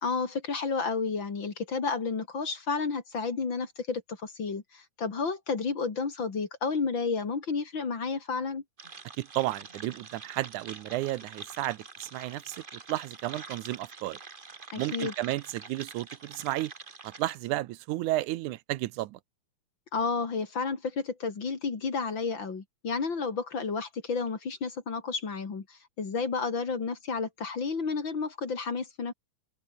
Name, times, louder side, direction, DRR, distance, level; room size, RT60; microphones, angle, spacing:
voice 1, 0.0-8.6 14.7-15.1 19.9-29.1, left 4 dB, 40° left, 3.2 m, -31 dB
sound 1, 8.8-17.4, right 4 dB, 35° right, 0.8 m, -45 dB
voice 2, 9.2-12.6 12.9-14.2 14.8-16.7 17.0-19.2, right 17 dB, 85° right, 2.2 m, -32 dB
omnidirectional pair, 3.5 m